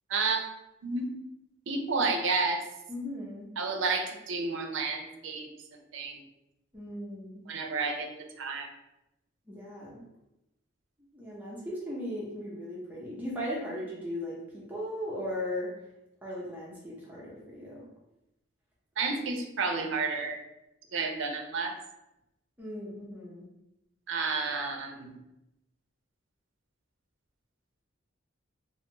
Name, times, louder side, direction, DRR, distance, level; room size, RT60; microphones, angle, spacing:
voice 1, 0.1-0.4 0.8-1.1 1.7-2.6 3.6-5.5 5.9-6.2 7.5-8.1 8.4-8.7 19.0-20.4 20.9-21.7 24.1-25.1, right 4 dB, 70° right, 4 dB, 0.4 m, -30 dB
voice 2, 2.9-3.5 6.7-7.4 9.5-10.0 11.1-15.7 16.2-17.8 22.6-23.5, left 1 dB, 10° right, -6 dB, 0.6 m, -37 dB
2.6 x 2.3 x 2.9 m, 0.89 s
head